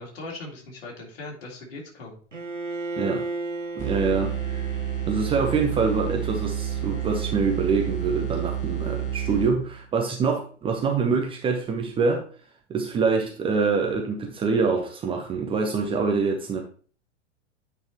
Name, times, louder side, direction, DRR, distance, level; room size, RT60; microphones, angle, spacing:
voice 1, 0.0-2.2, left 2 dB, 50° left, -2 dB, 2.9 m, -39 dB
Bowed string instrument, 2.3-8.3, right 3 dB, 85° right, 0.9 m, -36 dB
sound 1, 3.8-9.8, right 10 dB, 20° left, 1.8 m, -30 dB
voice 2, 3.8-4.6 5.1-12.2 12.7-16.6, right 4 dB, 15° right, 2 dB, 0.8 m, -25 dB
8.9 x 5.4 x 2.9 m, 0.42 s
figure-of-eight pair, 100°, 36 cm